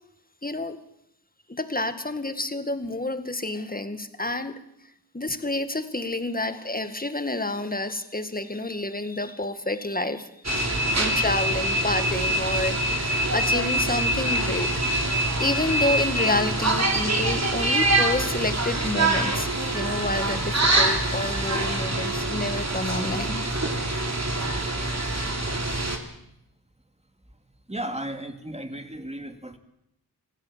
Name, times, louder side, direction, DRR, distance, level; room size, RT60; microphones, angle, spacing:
voice 1, 0.4-0.8 1.5-4.6 5.1-10.6 11.0-14.7 15.4-19.5 19.7-23.4, left 2 dB, 20° left, 9 dB, 1.9 m, -29 dB
sound 1, 10.4-26.0, right 1 dB, 40° right, 3.3 m, -25 dB
voice 2, 27.7-29.6, right 1 dB, 15° right, 7 dB, 2.3 m, -34 dB
26.5 x 16.5 x 7.5 m, 0.80 s
wide cardioid pair, 75°, 40 cm